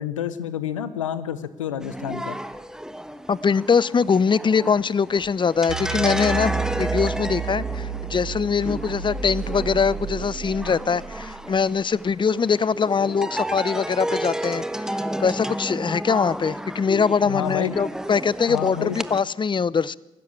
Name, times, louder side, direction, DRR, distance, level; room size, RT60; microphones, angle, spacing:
voice 1, 0.0-2.4 17.2-17.8 18.5-19.0, left 9 dB, 90° left, 14 dB, 0.9 m, -29 dB
sound 1, 1.8-19.2, right 1 dB, 5° right, 1.4 m, -32 dB
voice 2, 3.3-20.0, left 6 dB, 30° left, 22 dB, 0.7 m, -22 dB
sound 2, 5.7-11.9, right 7 dB, 75° right, 1.5 m, -32 dB
24.5 x 13.0 x 8.9 m, 1.1 s
hypercardioid pair, 40°, 16 cm